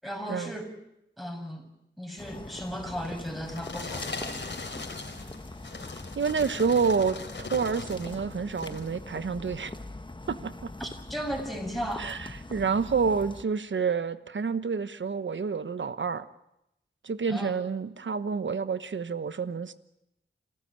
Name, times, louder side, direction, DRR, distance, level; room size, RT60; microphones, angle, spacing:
voice 1, 0.0-0.7 1.2-1.7 2.0-4.3 10.8-12.1 17.3-17.6, equal, ahead, 4 dB, 7.0 m, -36 dB
sound 1, 2.2-13.4, left 2 dB, 25° left, 1.3 m, -42 dB
sound 2, 3.0-8.2 8.5-8.9 9.5-9.6, left 3 dB, 70° left, 3.9 m, -39 dB
voice 2, 6.2-7.2 7.5-9.7 10.3-10.7 12.0-16.2 17.0-19.7, right 5 dB, 75° right, 13 dB, 1.2 m, -28 dB
28.0 x 14.5 x 8.9 m, 0.83 s
cardioid pair, 40°, 19 cm